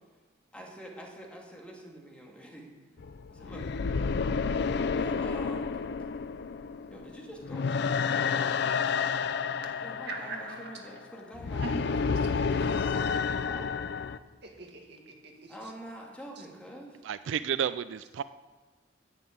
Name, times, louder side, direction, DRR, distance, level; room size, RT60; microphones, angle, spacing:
voice 1, 0.5-2.7 3.3-3.7 4.9-5.8 6.9-7.9 9.8-13.8 15.5-17.0, right 1 dB, 5° left, -1 dB, 2.2 m, -46 dB
Insane Laughing & Singing Ghost, 3.0-14.2, left 5 dB, 65° left, 0.5 m, -30 dB
voice 2, 10.1-10.8 11.6-11.7 14.4-15.5, right 3 dB, 65° right, 2 dB, 1.9 m, -41 dB
voice 3, 17.0-18.2, right 8 dB, 80° right, 14 dB, 0.3 m, -31 dB
10.5 x 8.1 x 8.6 m, 1.3 s
head